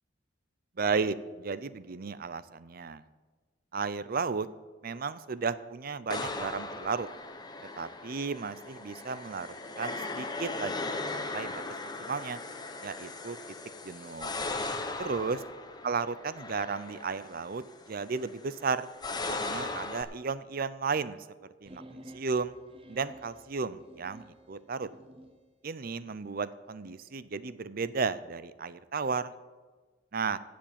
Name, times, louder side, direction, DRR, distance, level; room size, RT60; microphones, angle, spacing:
voice 1, 0.8-3.0 3.7-4.5 4.8-7.1 7.8-11.6 12.1-12.4 12.8-13.4 13.8-14.3 15.0-15.4 15.8-18.9 19.2-21.2 21.6-21.8 22.1-22.5 22.9-24.9 25.6-29.3 30.1-30.4, right 5 dB, 50° right, 15 dB, 0.6 m, -34 dB
sound 1, 6.1-20.0, left 3 dB, 20° left, 0.9 m, -38 dB
sound 2, 21.7-25.4, equal, 30° right, 1.0 m, -52 dB
15.0 x 5.2 x 8.8 m, 1.4 s
head